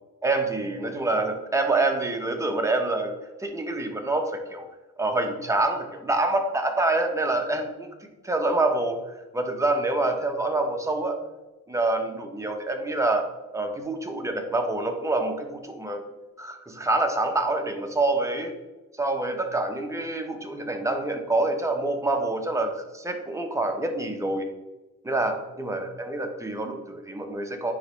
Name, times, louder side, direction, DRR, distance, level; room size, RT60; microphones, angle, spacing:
voice 1, 0.2-4.7 5.0-11.2 11.7-13.3 13.5-16.0 16.4-18.5 19.0-24.4 25.0-27.7, right 2 dB, 10° right, 3 dB, 1.0 m, -26 dB
9.7 x 3.2 x 3.2 m, 1.1 s
cardioid pair, 90°, 30 cm